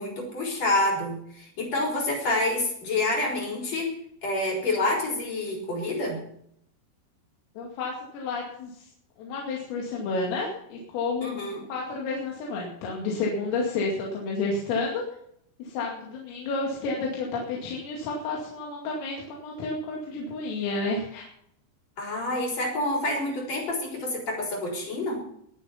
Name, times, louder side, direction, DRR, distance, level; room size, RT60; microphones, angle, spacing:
voice 1, 0.0-3.9 4.2-6.2 11.2-11.6 22.0-25.2, left 2 dB, 35° left, -1 dB, 4.8 m, -28 dB
voice 2, 7.6-8.9 9.2-11.3 11.7-15.0 15.6-21.3, left 3 dB, 85° left, -2 dB, 5.1 m, -30 dB
22.0 x 7.9 x 5.8 m, 0.70 s
omnidirectional pair, 5.8 m